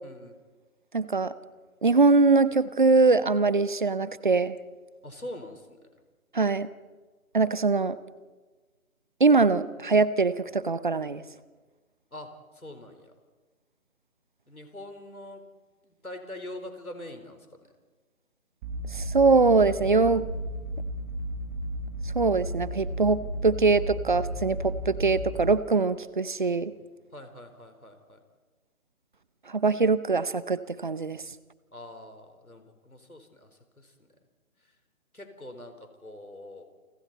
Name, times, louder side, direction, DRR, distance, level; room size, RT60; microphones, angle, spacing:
voice 1, 0.0-0.4 5.0-5.9 12.1-13.1 14.5-15.4 15.8-17.7 27.1-28.2 31.7-33.5 33.8-34.1 34.6-34.7 35.1-36.6, left 1 dB, 85° left, 6 dB, 4.3 m, -44 dB
voice 2, 0.9-1.3 1.8-4.5 6.3-6.7 7.3-8.0 9.2-11.2 18.9-20.2 22.1-26.7 29.5-31.2, right 4 dB, 35° right, 17 dB, 0.7 m, -22 dB
sound 1, 18.6-25.5, right 1 dB, 10° right, 1.2 m, -34 dB
29.0 x 24.0 x 4.2 m, 1.3 s
figure-of-eight pair, 150°, 42 cm